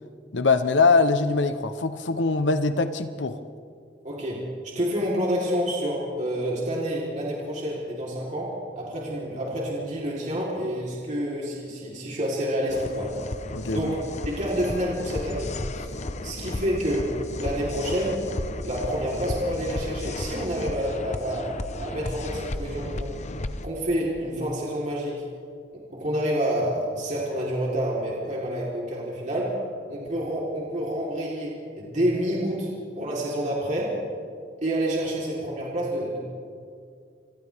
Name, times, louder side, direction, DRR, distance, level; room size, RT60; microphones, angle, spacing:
voice 1, 0.3-3.4 13.5-13.9, left 4 dB, 80° left, 9 dB, 0.9 m, -22 dB
voice 2, 4.0-4.4 4.7-13.1 13.7-14.0 14.3-15.9 16.2-17.1 17.4-18.2 18.6-21.5 21.8-23.2 23.6-25.2 25.9-29.5 29.9-32.7 32.9-34.0 34.6-36.2, equal, 40° right, -5 dB, 3.9 m, -28 dB
sound 1, 12.7-23.7, left 2 dB, 40° left, 0.9 m, -34 dB
29.5 x 25.5 x 3.6 m, 2.3 s
head